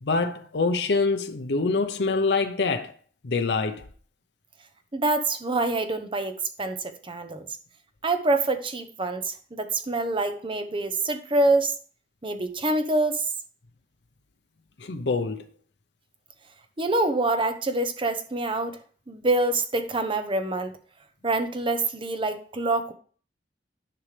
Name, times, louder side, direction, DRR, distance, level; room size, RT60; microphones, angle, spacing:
voice 1, 0.0-3.0 3.2-3.9 14.8-15.4, left 3 dB, 70° left, 0.7 m, -25 dB
voice 2, 4.9-7.5 8.0-11.7 12.2-13.3 16.8-18.8 19.1-20.7 21.2-22.9, right 2 dB, 30° right, 0.8 m, -26 dB
10.5 x 5.4 x 3.3 m
head